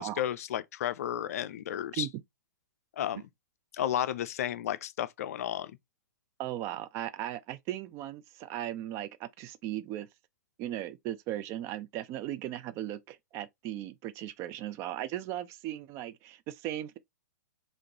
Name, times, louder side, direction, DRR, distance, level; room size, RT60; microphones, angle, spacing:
voice 1, 0.0-2.1 3.0-3.2 3.7-5.7, left 11 dB, 55° left, 0.4 m, -33 dB
voice 2, 6.4-10.1 10.6-17.0, right 13 dB, 30° right, 0.4 m, -37 dB
3.6 x 2.5 x 2.9 m
figure-of-eight pair, 110°, 10 cm